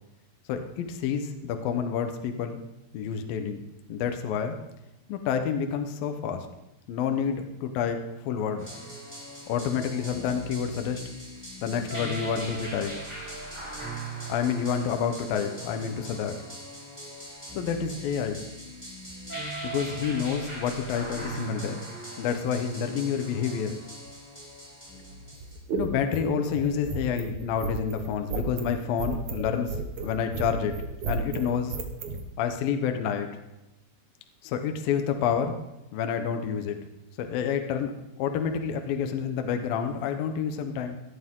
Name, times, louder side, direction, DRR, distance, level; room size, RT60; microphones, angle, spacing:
voice 1, 0.5-2.6 2.9-3.6 3.9-4.6 5.1-6.5 6.9-8.7 9.5-11.0 11.6-12.9 14.3-16.3 17.6-18.4 19.6-21.8 22.2-23.7 25.7-29.8 30.0-30.7 31.1-31.8 32.4-33.3 34.4-35.6 35.9-36.8 37.2-37.9 38.2-41.0, left 7 dB, 75° left, 6 dB, 2.2 m, -28 dB
sound 1, 8.6-25.6, right 2 dB, ahead, 5.4 m, -39 dB
sound 2, 25.3-32.2, right 4 dB, 90° right, 1.6 m, -33 dB
17.5 x 12.0 x 3.8 m, 0.93 s
omnidirectional pair, 5.5 m